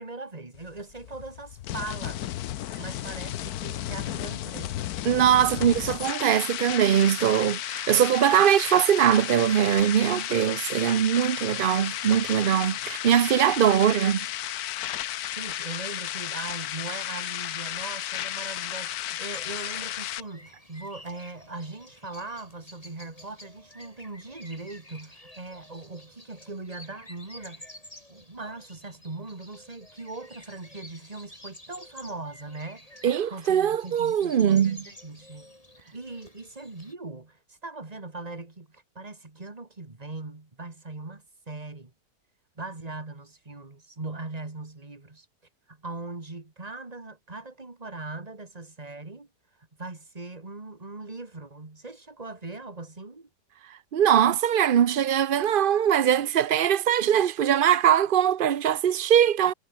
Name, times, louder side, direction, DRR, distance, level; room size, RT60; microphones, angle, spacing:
voice 1, 0.0-2.3 2.8-4.8 15.3-27.7 28.1-33.0 33.3-35.5 35.9-41.9 42.6-45.3 45.7-49.3 49.8-53.3, right 3 dB, 20° right, 2.2 m, -40 dB
sound 1, 0.5-20.2, left 13 dB, 65° left, 1.1 m, -33 dB
voice 2, 5.0-14.3 33.0-34.8 53.9-59.5, right 9 dB, 80° right, 0.4 m, -21 dB
sound 2, 19.2-36.9, left 1 dB, 20° left, 7.0 m, -50 dB
omnidirectional pair, 1.8 m